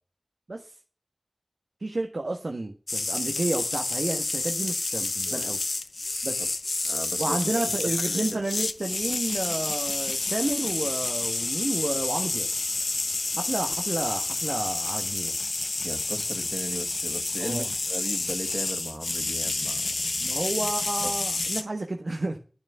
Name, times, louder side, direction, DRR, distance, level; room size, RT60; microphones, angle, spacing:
voice 1, 1.8-5.6 6.2-6.5 7.2-12.5 13.4-15.4 17.4-17.7 20.2-22.4, right 2 dB, 80° right, 1.4 m, -31 dB
sound 1, 2.9-21.6, left 2 dB, 85° left, 0.9 m, -29 dB
voice 2, 6.8-8.4 15.8-19.9 21.0-21.2, right 1 dB, 40° right, 2.4 m, -37 dB
11.0 x 7.4 x 9.2 m
wide cardioid pair, 55°, 0 cm